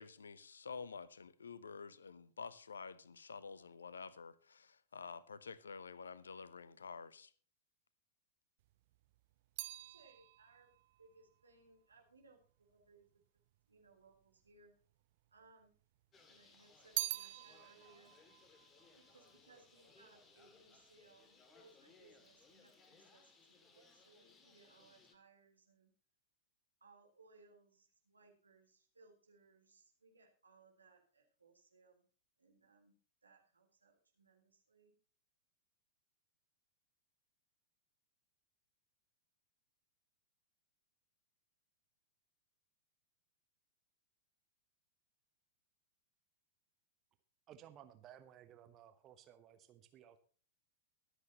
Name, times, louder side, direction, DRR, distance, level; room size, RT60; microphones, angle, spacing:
voice 1, 0.0-7.3, left 5 dB, 70° left, 0.8 m, -50 dB
sound 1, 8.6-13.0 13.8-14.6 14.9-16.0 16.4-19.9 20.2-20.7, right 17 dB, 50° right, 0.5 m, -46 dB
voice 2, 9.9-12.4 12.7-13.2 13.7-14.7 15.3-15.8 16.3-18.1 18.9-25.9 26.8-32.1 32.4-32.9 33.2-35.0, right 3 dB, 75° right, 3.8 m, -67 dB
Bird, 16.1-25.2, left 4 dB, 20° left, 2.3 m, -65 dB
voice 3, 47.5-50.2, right 10 dB, 30° right, 1.1 m, -58 dB
23.5 x 8.2 x 3.0 m
figure-of-eight pair, 95°, 0 cm